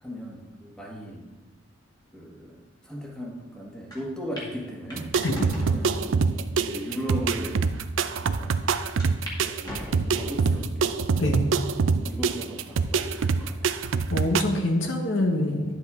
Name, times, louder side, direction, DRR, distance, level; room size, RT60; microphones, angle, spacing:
voice 1, 0.0-1.4 2.1-2.5 2.8-5.1 5.6-6.2 6.5-7.6 8.2-8.7 9.4-11.0 11.9-13.8, equal, 5° left, -2 dB, 1.4 m, -37 dB
sound 1, 3.9-4.0 4.4-4.5 4.9-5.8 6.4-6.5 7.3-7.4 7.6-7.7 9.0-9.4 9.6-10.4 11.0-11.4 11.9-12.0 13.2-13.6, equal, 20° left, 2.0 m, -39 dB
sound 2, 4.9-14.4, right 5 dB, 70° right, 0.4 m, -25 dB
voice 2, 11.2-11.5 14.1-15.7, left 1 dB, 70° left, 3 dB, 1.1 m, -25 dB
10.5 x 7.7 x 3.6 m, 1.3 s
head